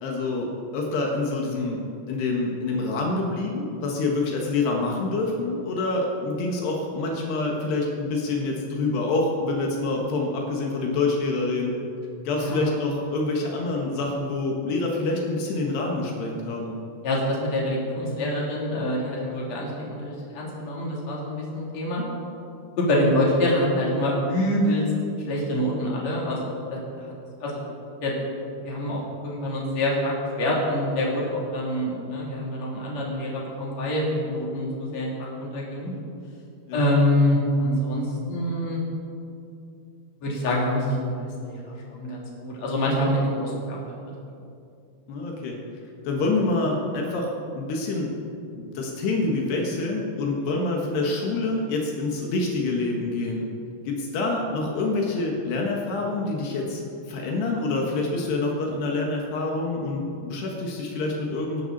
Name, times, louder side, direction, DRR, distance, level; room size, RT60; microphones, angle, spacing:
voice 1, 0.0-1.8 2.1-11.7 12.3-16.7 35.8-36.0 36.7-36.9 45.1-45.6 46.1-47.3 47.6-48.1 48.6-53.5 53.9-56.8 57.1-61.6, left 3 dB, 80° left, -1 dB, 3.7 m, -26 dB
voice 2, 12.4-12.7 17.0-22.0 22.8-24.8 25.3-26.4 26.7-27.1 27.4-27.6 28.0-28.1 28.6-35.9 36.7-38.8 40.2-41.1 41.4-43.9, left 1 dB, 45° left, -4 dB, 4.1 m, -26 dB
25.0 x 12.0 x 4.2 m, 2.6 s
omnidirectional pair, 4.7 m